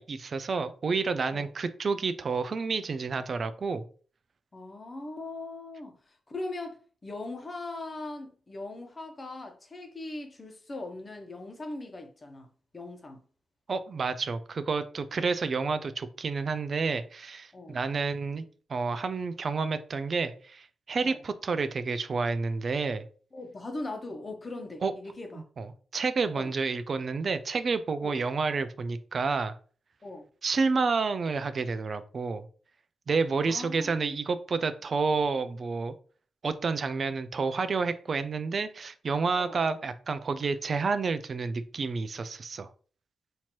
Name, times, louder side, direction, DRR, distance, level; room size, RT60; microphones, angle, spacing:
voice 1, 0.0-3.8 13.7-18.4 18.7-23.0 24.8-24.9 25.6-25.7 25.9-29.6 30.4-32.5 33.1-35.9 36.4-42.7, right 4 dB, 55° right, 0.4 m, -29 dB
voice 2, 4.5-12.5 12.7-13.2 17.5-17.8 21.0-21.2 23.3-25.4 26.3-26.5 28.0-28.2 30.0-30.3 33.4-34.2 39.4-39.6, left 2 dB, 35° left, 1.0 m, -40 dB
4.3 x 2.8 x 3.0 m
supercardioid pair, 55°, 0 cm